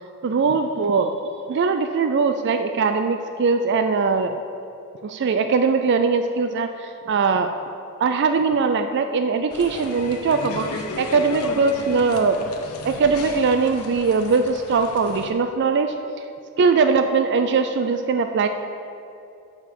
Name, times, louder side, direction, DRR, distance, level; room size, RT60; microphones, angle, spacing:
voice 1, 0.2-1.1 1.5-4.4 5.0-7.5 8.0-12.4 12.8-15.9 16.6-18.5, right 4 dB, 50° right, 8 dB, 0.4 m, -21 dB
sound 1, 9.5-15.3, left 2 dB, 80° left, 0.8 m, -34 dB
8.7 x 5.2 x 6.7 m, 2.6 s
head